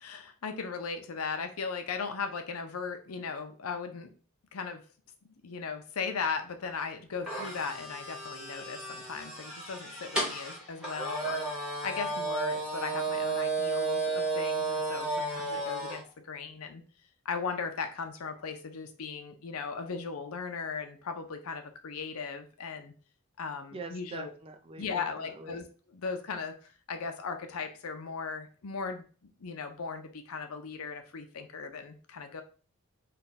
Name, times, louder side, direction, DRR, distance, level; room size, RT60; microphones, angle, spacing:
voice 1, 0.0-4.1 4.5-4.8 5.4-16.8 17.2-22.9 23.4-24.3 24.8-32.4, left 5 dB, 80° left, 7 dB, 0.6 m, -37 dB
sound 1, 7.2-16.0, right 3 dB, 5° right, 1.0 m, -33 dB
voice 2, 23.7-25.6, right 3 dB, 25° right, 5 dB, 0.4 m, -44 dB
3.3 x 2.3 x 4.0 m, 0.38 s
head